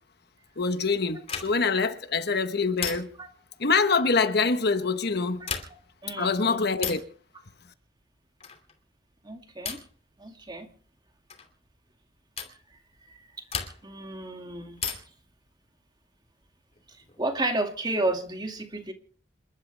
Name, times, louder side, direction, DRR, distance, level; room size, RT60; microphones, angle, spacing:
voice 1, 0.6-3.1 3.6-5.5 6.2-7.0, left 4 dB, 60° left, 1.2 m, -25 dB
sound 1, 1.2-1.8 2.8-3.4 5.3-6.0 6.8-7.2 8.4-8.7 9.6-10.0 11.3-11.5 12.4-12.6 13.5-14.0 14.8-15.3 16.7-17.4, left 6 dB, 35° left, 2.7 m, -36 dB
voice 2, 6.0-6.6 9.2-9.8 10.2-10.7 13.1-13.3 13.8-14.8 17.2-18.9, right 2 dB, 25° right, 2.2 m, -31 dB
28.0 x 12.0 x 3.4 m
head